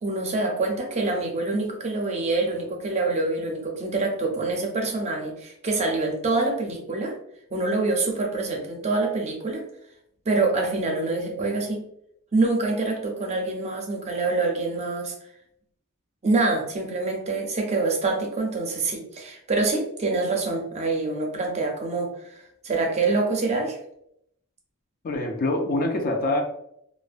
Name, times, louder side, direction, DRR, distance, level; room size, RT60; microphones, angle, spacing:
voice 1, 0.0-7.1 7.5-9.6 10.3-11.8 12.3-15.1 16.2-23.8, right 3 dB, 30° right, 1 dB, 0.5 m, -26 dB
voice 2, 25.0-26.4, left 2 dB, 40° left, 3 dB, 0.3 m, -25 dB
2.5 x 2.1 x 2.4 m, 0.74 s
head